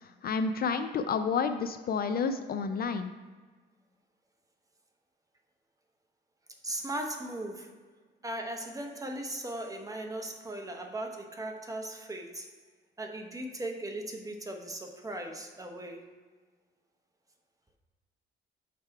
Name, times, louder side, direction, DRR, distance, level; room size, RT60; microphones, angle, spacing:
voice 1, 0.2-3.1, left 5 dB, 50° left, 9 dB, 0.4 m, -30 dB
voice 2, 6.6-7.7 8.2-12.5 13.0-16.0, right 1 dB, 15° right, 3 dB, 0.9 m, -38 dB
6.5 x 3.4 x 4.6 m, 1.4 s
cardioid pair, 90°, 20 cm